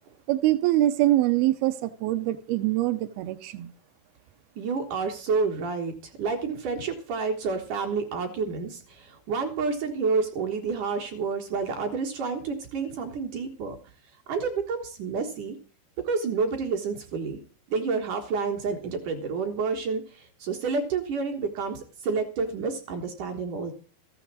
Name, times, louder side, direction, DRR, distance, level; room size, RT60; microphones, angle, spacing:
voice 1, 0.3-3.7, right 15 dB, 85° right, 11 dB, 2.2 m, -24 dB
voice 2, 4.6-13.9 14.3-15.6 16.0-17.4 17.7-23.7, right 4 dB, 65° right, 3 dB, 2.2 m, -29 dB
15.0 x 7.1 x 7.4 m, 0.40 s
omnidirectional pair, 5.3 m